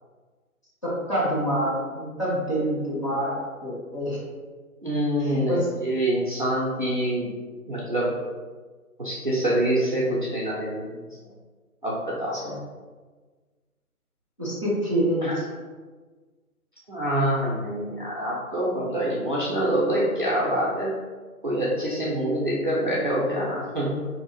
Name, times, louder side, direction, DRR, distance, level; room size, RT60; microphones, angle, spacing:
voice 1, 0.8-4.2 5.2-5.7 12.3-12.6 14.4-15.3, equal, 20° left, -10 dB, 0.7 m, -27 dB
voice 2, 4.8-7.3 7.7-8.1 9.0-11.0 11.8-12.4 15.2-15.4 16.9-20.9 21.4-24.1, right 1 dB, 35° right, -7 dB, 0.4 m, -25 dB
2.6 x 2.5 x 2.9 m, 1.4 s
figure-of-eight pair, 145°, 44 cm